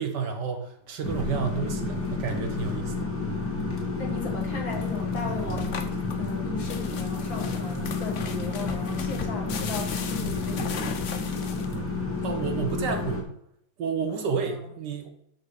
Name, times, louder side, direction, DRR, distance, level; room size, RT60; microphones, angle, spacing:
voice 1, 0.0-3.1 3.5-3.8 12.2-13.3 13.8-15.1, right 5 dB, 65° right, 5 dB, 1.7 m, -30 dB
sound 1, 1.0-13.2, left 3 dB, 5° left, 1.9 m, -30 dB
voice 2, 4.0-11.3 14.1-14.5, left 4 dB, 75° left, 1 dB, 2.5 m, -37 dB
sound 2, 4.7-12.0, left 6 dB, 55° left, 0.9 m, -38 dB
12.0 x 4.5 x 4.8 m, 0.73 s
omnidirectional pair, 2.1 m